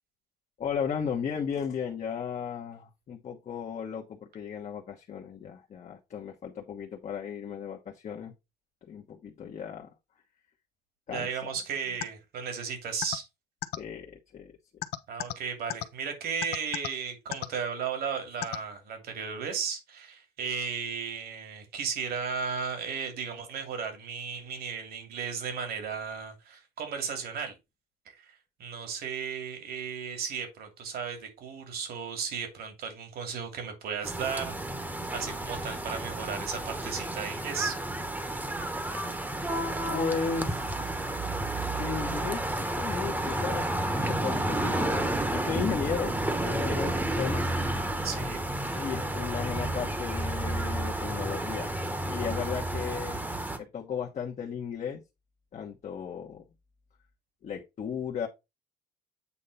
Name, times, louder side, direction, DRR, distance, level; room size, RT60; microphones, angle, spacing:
voice 1, 0.6-8.3 8.8-9.9 11.1-11.6 13.8-14.5 39.8-41.4 41.7-43.7 44.1-47.5 48.7-51.8 52.1-53.2 53.6-55.0 55.5-56.4 57.4-58.3, left 7 dB, 45° left, 1.2 m, -35 dB
voice 2, 11.1-13.2 15.1-27.6 28.1-28.3 28.6-34.5 34.8-37.7 48.0-48.4, right 6 dB, 65° right, 2.6 m, -35 dB
sound 1, 12.0-12.1 13.0-13.2 13.6-13.8 14.8-15.3 15.7-15.8 16.4-16.9 17.3-17.5 18.4-18.6, left 14 dB, 70° left, 0.7 m, -31 dB
sound 2, 34.0-53.6, right 1 dB, 10° right, 1.2 m, -31 dB
8.4 x 2.9 x 5.4 m
cardioid pair, 110°, 17 cm